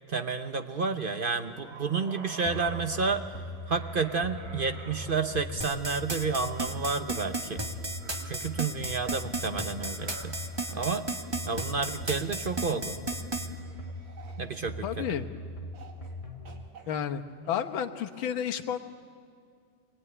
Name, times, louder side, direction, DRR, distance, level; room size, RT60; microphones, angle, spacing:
voice 1, 0.1-3.2 3.7-7.6 8.3-10.4 10.7-11.1 11.5-13.0 14.4-15.2, right 4 dB, 55° right, 8 dB, 0.6 m, -30 dB
sound 1, 1.2-15.2 15.7-16.2 16.4-18.2, right 3 dB, 85° right, 2.9 m, -51 dB
sound 2, 2.4-16.7, equal, 20° left, 1.3 m, -41 dB
sound 3, 5.6-13.5, right 2 dB, 15° right, 1.4 m, -34 dB
voice 2, 14.8-15.2 16.9-18.8, left 9 dB, 85° left, 6 dB, 1.9 m, -31 dB
26.5 x 21.5 x 9.7 m, 2.2 s
omnidirectional pair, 2.1 m